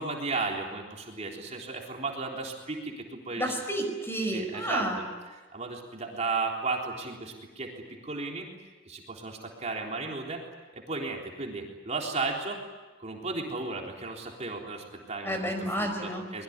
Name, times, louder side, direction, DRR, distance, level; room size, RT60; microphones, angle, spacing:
voice 1, 0.0-3.5 4.3-4.8 5.5-8.5 8.9-10.4 10.7-12.6 13.0-15.4 15.8-16.4, right 3 dB, 35° right, 0 dB, 3.7 m, -34 dB
voice 2, 3.4-5.0 15.2-16.2, right 1 dB, 10° left, 5 dB, 4.9 m, -30 dB
25.0 x 22.0 x 9.5 m, 1.3 s
head